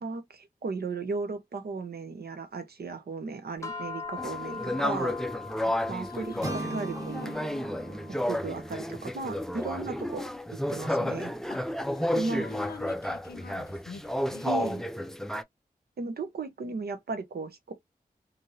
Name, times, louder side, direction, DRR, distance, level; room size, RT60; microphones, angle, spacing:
voice 1, 0.0-5.2 5.9-7.3 8.0-11.3 12.2-12.5 14.4-14.8 16.0-17.7, right 4 dB, 85° right, 0.8 m, -36 dB
sound 1, 3.6-14.1, left 5 dB, 20° left, 0.8 m, -44 dB
sound 2, 4.2-15.4, left 1 dB, 5° left, 0.3 m, -32 dB
voice 2, 5.6-7.4 11.5-14.8, left 5 dB, 75° left, 0.6 m, -45 dB
sound 3, 6.4-10.4, right 1 dB, 25° right, 1.3 m, -39 dB
3.0 x 2.6 x 2.6 m
wide cardioid pair, 90°, 16 cm